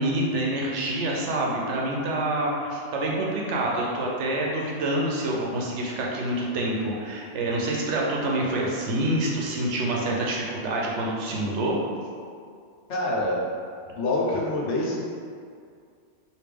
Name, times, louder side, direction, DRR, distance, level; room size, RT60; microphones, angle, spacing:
voice 1, 0.0-11.8, right 1 dB, 80° right, -2 dB, 1.0 m, -27 dB
voice 2, 12.9-13.4 13.9-15.0, left 2 dB, 80° left, -4 dB, 1.0 m, -26 dB
3.2 x 2.7 x 3.3 m, 2.2 s
omnidirectional pair, 1.2 m